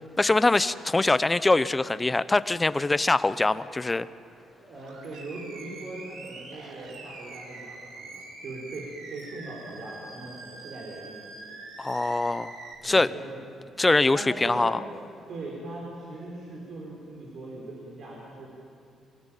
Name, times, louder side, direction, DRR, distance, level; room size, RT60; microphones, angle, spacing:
voice 1, 0.2-4.1 11.8-12.6 12.8-13.1 13.8-14.8, left 2 dB, 20° left, 15 dB, 0.8 m, -23 dB
voice 2, 4.5-11.2 12.8-13.4 14.1-14.7 15.3-18.5, right 2 dB, 60° right, -2 dB, 4.9 m, -40 dB
Animal, 4.8-12.7, right 3 dB, 80° right, 3.9 m, -44 dB
24.0 x 18.0 x 9.2 m, 2.5 s
cardioid pair, 90°, 0 cm